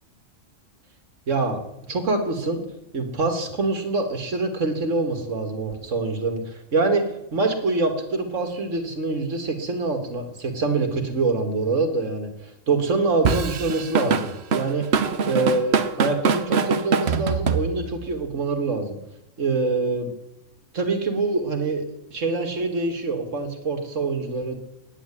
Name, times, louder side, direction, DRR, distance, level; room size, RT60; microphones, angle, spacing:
voice 1, 1.3-1.6 1.9-2.6 2.9-7.0 7.3-14.9 15.3-19.0 19.4-20.1 20.7-21.8 22.1-24.6, right 3 dB, 80° right, 5 dB, 2.4 m, -25 dB
Drum kit / Drum, 13.2-18.1, right 6 dB, 60° right, 1.2 m, -23 dB
9.7 x 8.9 x 9.9 m, 0.88 s
omnidirectional pair, 1.3 m